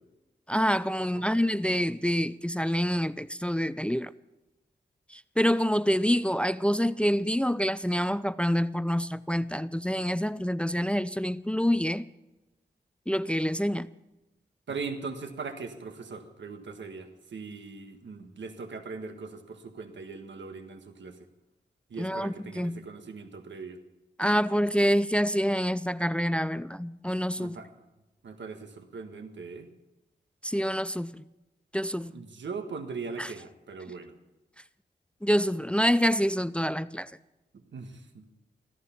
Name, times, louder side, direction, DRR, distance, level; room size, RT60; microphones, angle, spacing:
voice 1, 0.5-4.1 5.1-12.1 13.1-13.9 22.0-22.8 24.2-27.6 30.4-31.2 31.7-32.2 33.2-33.3 35.2-37.1, equal, 5° left, 0.4 m, -27 dB
voice 2, 14.7-21.2 21.9-23.8 27.4-27.7 28.2-29.7 32.1-34.1 37.5-38.2, right 4 dB, 90° right, 1.6 m, -40 dB
16.5 x 14.0 x 5.8 m
cardioid pair, 55°, 18 cm